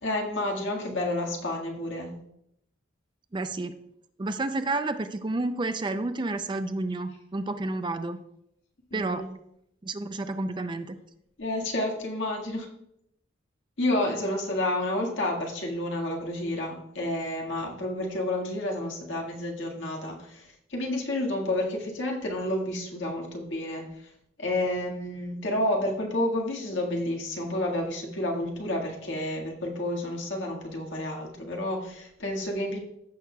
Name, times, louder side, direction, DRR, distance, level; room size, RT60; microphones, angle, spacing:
voice 1, 0.0-2.1 8.9-9.3 11.4-12.7 13.8-23.9 24.4-32.8, left 1 dB, 70° left, 0 dB, 1.7 m, -30 dB
voice 2, 3.3-3.8 4.2-8.2 8.9-9.3 9.8-11.0, right 2 dB, 25° right, 9 dB, 0.4 m, -30 dB
15.0 x 6.4 x 2.3 m, 0.77 s
head